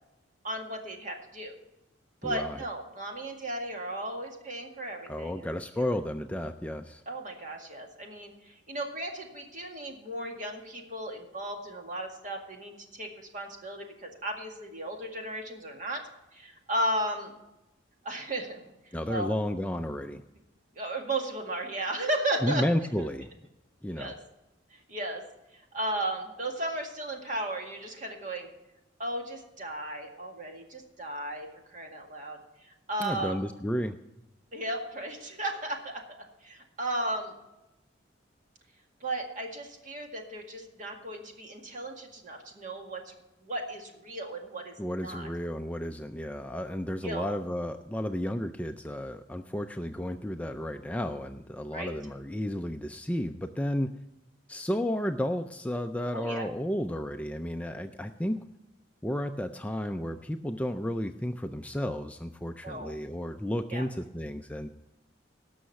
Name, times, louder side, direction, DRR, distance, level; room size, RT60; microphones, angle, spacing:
voice 1, 0.4-1.5 2.2-5.5 7.1-16.0 16.3-17.3 18.0-18.6 19.1-19.3 20.8-22.6 23.0-23.1 24.0-24.2 24.7-25.2 25.7-28.5 29.0-33.3 34.5-37.3 39.0-43.1 43.4-45.3 47.0-47.4 51.7-51.9 56.1-56.5 62.6-63.0 63.7-63.8, right 1 dB, 40° right, 3 dB, 1.9 m, -35 dB
voice 2, 2.2-2.6 5.1-7.0 18.9-20.2 22.4-23.3 23.8-24.1 33.0-34.0 44.8-53.9 54.5-58.4 59.0-64.7, left 1 dB, 5° left, 7 dB, 0.3 m, -32 dB
17.5 x 6.3 x 5.7 m, 0.96 s
head